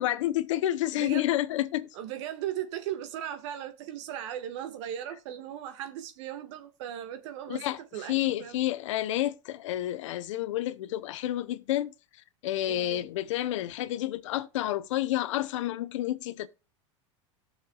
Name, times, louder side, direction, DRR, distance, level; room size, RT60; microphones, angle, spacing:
voice 1, 0.0-1.9 7.5-7.8 8.1-11.9 12.4-16.5, left 14 dB, 75° left, 0.8 m, -29 dB
voice 2, 0.9-1.3 1.9-8.6 12.6-13.1, right 10 dB, 65° right, 1.6 m, -37 dB
18.0 x 6.5 x 2.3 m
hypercardioid pair, 95°, 16 cm